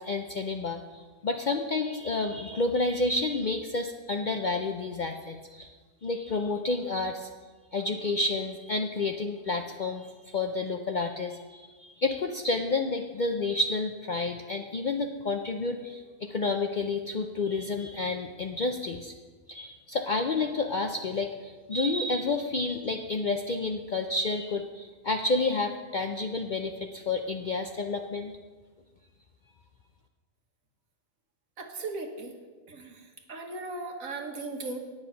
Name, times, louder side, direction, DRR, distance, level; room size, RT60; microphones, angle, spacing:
voice 1, 0.0-5.7 6.0-7.3 7.7-19.1 19.5-28.3, left 3 dB, 55° left, 4 dB, 0.5 m, -30 dB
voice 2, 31.6-32.4 32.7-34.8, right 3 dB, 80° right, 3 dB, 1.7 m, -37 dB
9.4 x 8.9 x 5.7 m, 1.4 s
omnidirectional pair, 1.4 m